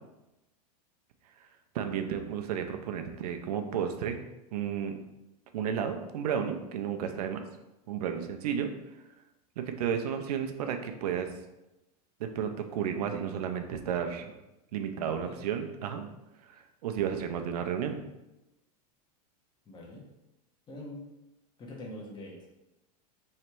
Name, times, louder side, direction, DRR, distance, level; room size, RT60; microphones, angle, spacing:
voice 1, 1.7-4.2 4.5-5.0 5.5-7.4 7.9-8.7 9.6-11.3 12.2-14.3 14.7-16.1 16.8-18.0, right 8 dB, 75° right, 6 dB, 0.6 m, -32 dB
voice 2, 14.9-15.4 19.7-20.0 20.7-21.1 21.6-22.5, left 1 dB, 20° left, -3 dB, 1.0 m, -44 dB
3.2 x 2.8 x 4.4 m, 0.95 s
supercardioid pair, 125°, 20 cm